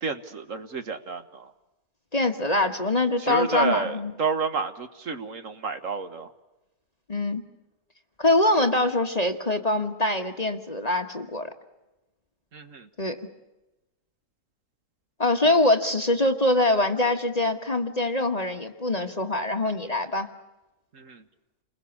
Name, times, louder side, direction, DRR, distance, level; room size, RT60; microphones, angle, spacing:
voice 1, 0.0-1.5 3.2-6.3 12.5-12.9 20.9-21.2, right 5 dB, 55° right, 9 dB, 1.6 m, -30 dB
voice 2, 2.1-4.1 7.1-7.4 8.2-11.5 13.0-13.2 15.2-20.3, left 2 dB, 25° left, 6 dB, 1.3 m, -24 dB
29.0 x 21.0 x 7.1 m, 1.0 s
omnidirectional pair, 1.6 m